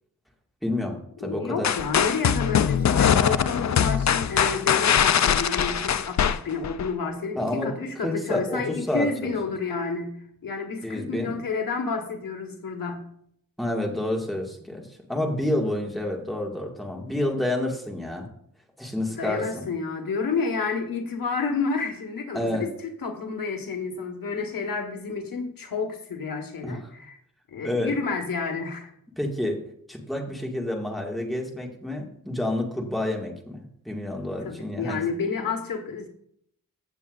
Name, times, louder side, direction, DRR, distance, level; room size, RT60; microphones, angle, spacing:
voice 1, 0.6-1.7 7.3-7.7 8.0-9.3 10.8-11.4 13.6-18.3 18.8-19.7 22.3-22.7 26.6-26.8 27.6-27.9 29.2-29.6 29.9-35.0, left 1 dB, ahead, 0 dB, 1.8 m, -29 dB
voice 2, 1.2-13.1 19.1-22.7 23.0-27.2 27.5-28.9 34.3-36.1, left 4 dB, 75° left, 5 dB, 1.4 m, -30 dB
sound 1, 1.6-6.9, left 8 dB, 55° left, 0.5 m, -22 dB
15.5 x 7.1 x 2.4 m, 0.69 s
wide cardioid pair, 125°, 34 cm